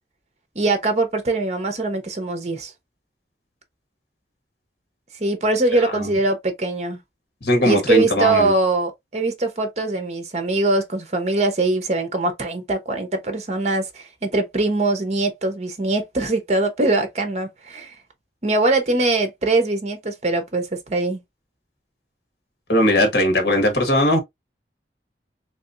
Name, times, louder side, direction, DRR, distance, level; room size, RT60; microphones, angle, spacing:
voice 1, 0.5-2.7 5.2-7.0 7.6-17.9 18.4-21.2, right 2 dB, 40° right, 0.9 m, -22 dB
voice 2, 7.4-8.5 22.7-24.2, left 1 dB, 65° left, 1.5 m, -19 dB
3.4 x 3.0 x 2.6 m
head